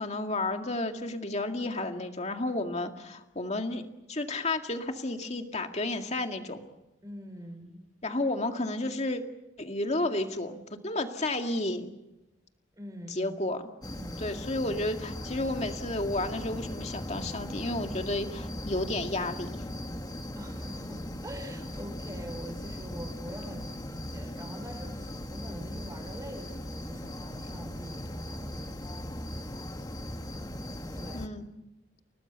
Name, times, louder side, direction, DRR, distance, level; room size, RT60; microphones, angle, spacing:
voice 1, 0.0-6.6 8.0-9.2 9.6-11.9 13.1-13.6 14.2-19.6 31.1-31.5, left 2 dB, 35° left, 5 dB, 2.1 m, -32 dB
voice 2, 7.0-7.8 12.7-13.4 13.9-14.4 20.3-28.8 31.0-31.3, equal, 20° right, 4 dB, 5.4 m, -44 dB
sound 1, 13.8-31.3, left 1 dB, 20° left, 1.4 m, -39 dB
30.0 x 19.0 x 6.9 m, 0.94 s
head